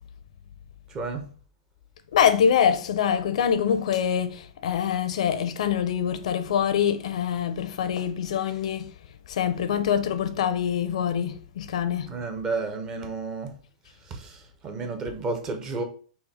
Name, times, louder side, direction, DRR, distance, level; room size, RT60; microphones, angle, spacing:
voice 1, 0.9-1.2 12.1-13.5 14.1-15.8, right 3 dB, 15° right, 0.6 m, -32 dB
voice 2, 2.1-8.9 9.3-12.1, left 8 dB, 65° left, 0.5 m, -24 dB
5.6 x 2.1 x 4.1 m
supercardioid pair, 170°, 4 cm